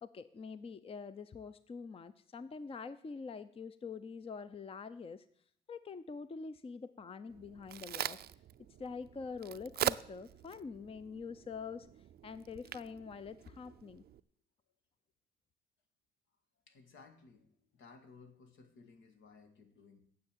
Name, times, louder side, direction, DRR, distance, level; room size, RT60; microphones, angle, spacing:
voice 1, 0.0-5.3 5.7-8.2 8.8-11.9 12.2-14.0, left 5 dB, 30° left, 14 dB, 0.6 m, -45 dB
Crack, 7.3-14.2, right 11 dB, 55° right, 0.4 m, -42 dB
voice 2, 16.7-20.0, left 4 dB, 80° left, 6 dB, 1.9 m, -59 dB
9.5 x 6.8 x 8.9 m, 0.66 s
cardioid pair, 90°, 20 cm